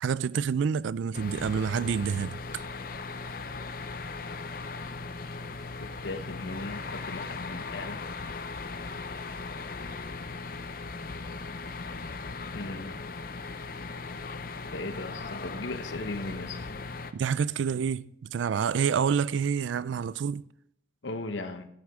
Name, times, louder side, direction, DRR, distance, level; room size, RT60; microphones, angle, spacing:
voice 1, 0.0-2.6 17.1-20.5, right 6 dB, 75° right, 0.3 m, -28 dB
sound 1, 1.1-17.1, left 3 dB, 45° left, 0.6 m, -38 dB
voice 2, 5.8-8.0 12.5-13.1 14.7-16.7 21.0-21.7, left 2 dB, 75° left, 1.0 m, -37 dB
12.5 x 11.5 x 3.6 m
head